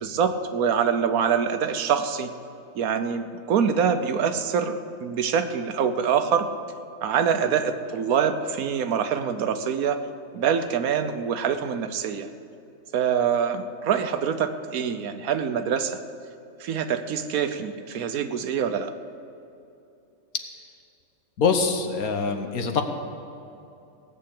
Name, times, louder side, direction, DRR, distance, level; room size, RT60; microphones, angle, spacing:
voice 1, 0.0-2.3 2.7-6.5 7.0-10.0 10.3-12.3 12.9-16.0 16.6-18.9, right 7 dB, 80° right, 9 dB, 1.2 m, -25 dB
voice 2, 21.4-22.8, left 5 dB, 85° left, 6 dB, 1.6 m, -24 dB
17.5 x 6.8 x 8.5 m, 2.7 s
omnidirectional pair, 1.5 m